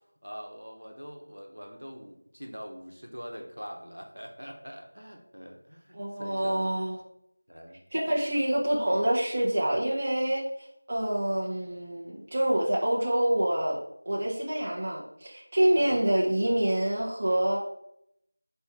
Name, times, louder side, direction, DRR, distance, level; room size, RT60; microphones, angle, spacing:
voice 1, 0.2-6.7 7.5-7.8 15.8-16.0, equal, 85° right, 3 dB, 0.9 m, -43 dB
voice 2, 5.9-7.0 7.9-10.4 10.9-13.8 14.1-17.6, right 1 dB, 25° right, -5 dB, 0.7 m, -26 dB
4.4 x 2.7 x 3.5 m, 0.77 s
figure-of-eight pair, 175°, 0 cm